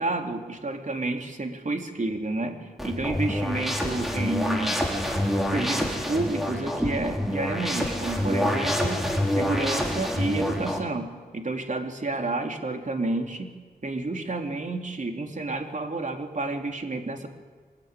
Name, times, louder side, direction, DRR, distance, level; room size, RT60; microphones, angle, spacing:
voice 1, 0.0-4.8 5.4-9.0 9.3-13.5 13.8-17.3, right 2 dB, 45° right, 4 dB, 3.0 m, -30 dB
sound 1, 2.8-10.8, left 1 dB, ahead, 4.2 m, -27 dB
24.5 x 20.5 x 9.8 m, 1.4 s
wide cardioid pair, 100°, 18 cm